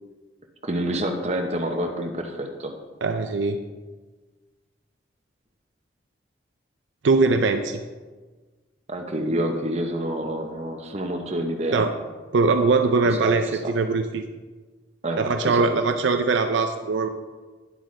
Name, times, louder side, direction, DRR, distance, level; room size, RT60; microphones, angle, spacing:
voice 1, 0.6-2.7 8.9-11.8 13.0-13.4 13.6-13.7 15.0-15.7, right 1 dB, 35° right, 3 dB, 0.8 m, -28 dB
voice 2, 3.0-3.6 7.0-7.8 11.7-11.9 12.3-14.2 15.2-17.1, right 4 dB, 75° right, 7 dB, 0.5 m, -21 dB
9.6 x 7.5 x 3.2 m, 1.3 s
head